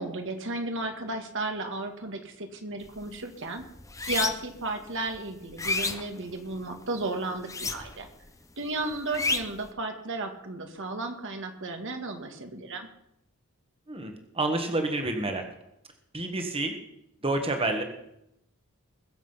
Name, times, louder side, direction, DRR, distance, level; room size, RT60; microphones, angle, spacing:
voice 1, 0.0-3.6 4.0-8.1 8.6-12.9, right 2 dB, 60° right, 5 dB, 1.8 m, -34 dB
sound 1, 2.8-3.1 3.5-4.6 5.1-6.8 7.4-8.2 8.4-9.7, left 3 dB, 15° left, 0.9 m, -31 dB
voice 2, 13.9-15.4 16.1-16.8 17.2-17.8, right 2 dB, 25° right, 4 dB, 1.6 m, -29 dB
21.5 x 7.4 x 5.7 m, 0.81 s
head